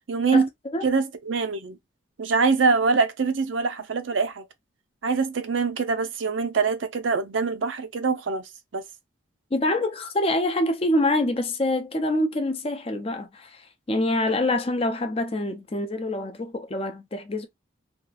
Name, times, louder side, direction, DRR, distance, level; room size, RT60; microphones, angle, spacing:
voice 1, 0.1-0.5 0.8-1.8 2.2-4.5 5.0-8.8, right 4 dB, 80° right, 0.5 m, -24 dB
voice 2, 9.5-17.5, left 1 dB, 30° left, 0.5 m, -25 dB
2.7 x 2.4 x 2.3 m
head